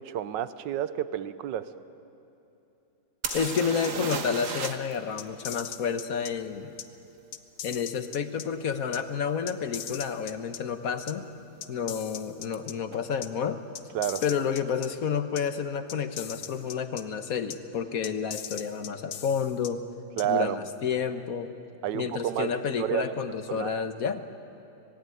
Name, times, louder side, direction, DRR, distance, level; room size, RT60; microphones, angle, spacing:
voice 1, 0.0-1.7 13.9-14.2 20.2-20.6 21.8-23.1 23.5-23.9, right 11 dB, 75° right, 13 dB, 1.5 m, -30 dB
sound 1, 3.2-4.9 5.2-5.3 8.7-8.8 9.5-9.6 9.9-10.5 12.5-12.6 12.9-13.0, right 5 dB, 50° right, 1.5 m, -34 dB
sound 2, 3.3-4.2 4.6-4.7 5.2-6.3 6.8-6.9 7.3-8.5 8.9-9.0 9.5-10.6 11.1-11.2 11.6-12.7 13.2-13.3 13.8-14.9 15.4-15.5 15.9-17.0 17.5-17.6 18.0-19.7 20.2-20.3, left 10 dB, 75° left, 1.5 m, -39 dB
voice 2, 3.3-6.7 7.6-11.2 11.7-13.6 14.2-19.8 20.2-21.5 21.9-24.3, left 6 dB, 55° left, 9 dB, 1.4 m, -30 dB
25.5 x 18.5 x 9.4 m, 2.9 s
omnidirectional pair, 2.0 m